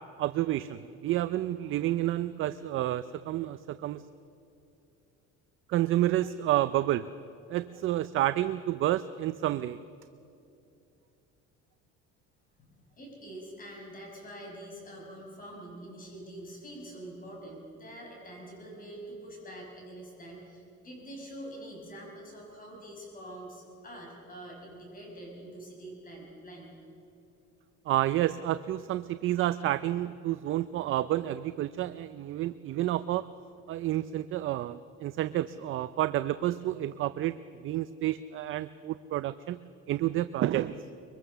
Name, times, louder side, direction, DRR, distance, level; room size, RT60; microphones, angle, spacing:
voice 1, 0.2-4.0 5.7-7.1 7.5-9.8 27.9-33.3 33.7-39.6 39.9-40.8, right 14 dB, 45° right, 13 dB, 0.5 m, -30 dB
voice 2, 13.0-26.8, right 1 dB, 30° left, 0 dB, 5.9 m, -45 dB
23.5 x 23.0 x 6.9 m, 2.7 s
cardioid pair, 155°, 29 cm